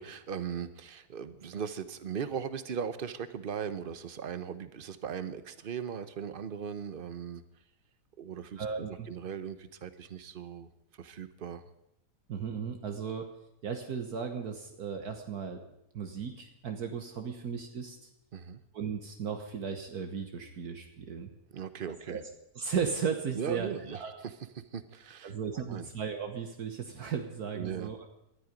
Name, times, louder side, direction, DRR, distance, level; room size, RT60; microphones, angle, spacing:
voice 1, 0.0-7.4 8.2-10.7 11.0-11.6 18.3-18.6 21.5-22.2 23.3-24.3 24.7-25.3 25.7-25.9 27.5-27.9, right 7 dB, 45° right, 13 dB, 0.8 m, -38 dB
voice 2, 8.6-9.1 12.3-13.3 13.6-15.6 15.9-18.0 18.7-21.3 22.1-22.2 22.5-24.1 25.2-28.0, right 6 dB, 65° right, 5 dB, 1.7 m, -36 dB
19.0 x 12.5 x 5.2 m, 0.83 s
omnidirectional pair, 1.8 m